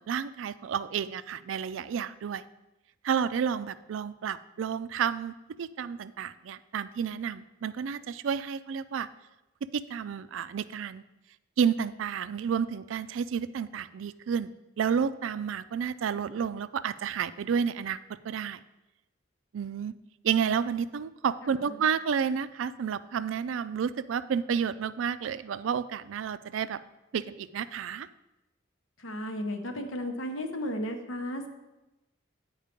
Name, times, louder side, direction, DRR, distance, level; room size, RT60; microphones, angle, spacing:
voice 1, 0.0-2.4 3.0-9.1 9.7-11.0 11.6-14.5 14.8-18.0 18.2-18.6 19.5-19.9 20.2-26.8 27.1-28.1, right 7 dB, 85° right, 14 dB, 0.3 m, -30 dB
voice 2, 21.4-21.8 29.0-31.5, left 1 dB, 85° left, 5 dB, 1.0 m, -34 dB
8.8 x 4.6 x 5.1 m, 1.0 s
head